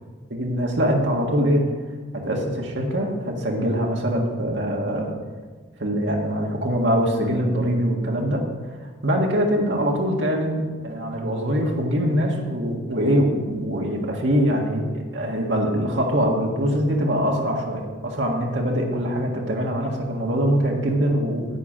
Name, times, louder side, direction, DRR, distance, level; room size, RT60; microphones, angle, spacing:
voice 1, 0.3-1.7 2.1-5.1 5.8-8.4 9.0-21.5, equal, 75° right, 0 dB, 1.7 m, -23 dB
9.9 x 9.3 x 5.0 m, 1.4 s
head